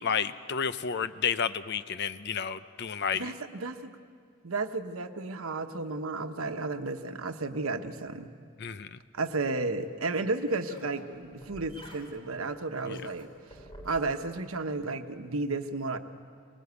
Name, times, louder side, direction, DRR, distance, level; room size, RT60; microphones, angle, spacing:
voice 1, 0.0-3.3 8.6-9.0 12.9-13.0, left 7 dB, 55° left, 13 dB, 0.6 m, -31 dB
voice 2, 3.1-4.0 4.4-8.3 9.1-13.3 13.8-16.0, right 3 dB, 85° right, 7 dB, 1.1 m, -33 dB
sound 1, 9.8-14.2, equal, 25° left, 3.5 m, -51 dB
23.0 x 20.0 x 8.2 m, 2.1 s
head